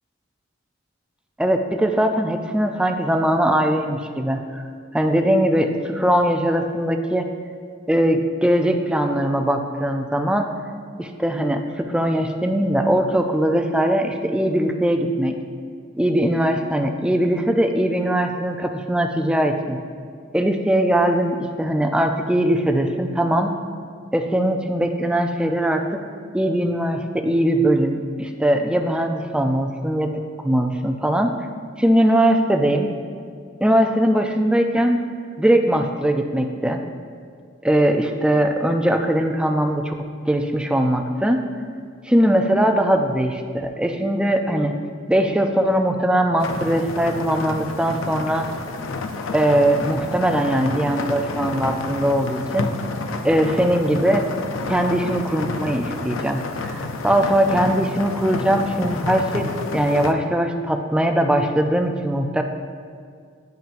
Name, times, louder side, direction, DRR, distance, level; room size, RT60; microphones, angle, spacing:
voice 1, 1.4-4.6 4.9-7.3 7.9-10.5 11.0-15.3 16.0-19.8 20.3-23.5 24.1-26.0 26.3-31.3 31.8-32.9 33.6-35.0 35.4-36.8 37.6-39.9 40.3-41.4 42.1-44.7 45.1-48.5 49.3-52.7 53.2-54.3 54.7-62.4, right 1 dB, 5° right, 5 dB, 0.3 m, -20 dB
sound 1, 46.4-60.1, left 3 dB, 75° left, 0.5 m, -30 dB
10.0 x 5.5 x 2.5 m, 2.1 s
head